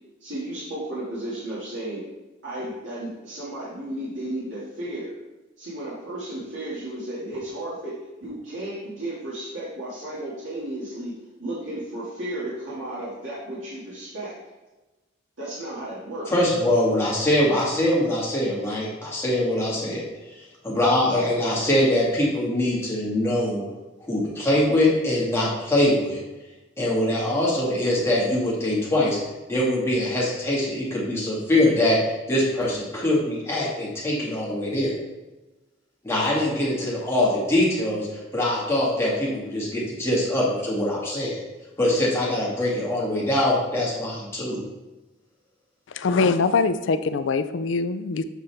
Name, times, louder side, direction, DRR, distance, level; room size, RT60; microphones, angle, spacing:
voice 1, 0.2-2.0 2.4-5.1 5.6-11.1 11.4-14.3 15.4-16.6, right 1 dB, 75° right, -9 dB, 2.1 m, -34 dB
voice 2, 16.3-20.1 20.6-23.6 24.0-26.2 26.8-29.2 29.5-32.0 32.3-34.9 36.0-38.1 38.3-41.4 41.8-44.6, left 1 dB, 15° left, -6 dB, 2.0 m, -23 dB
voice 3, 45.9-48.2, left 4 dB, 70° left, 11 dB, 0.4 m, -23 dB
7.4 x 5.4 x 3.5 m, 1.1 s
head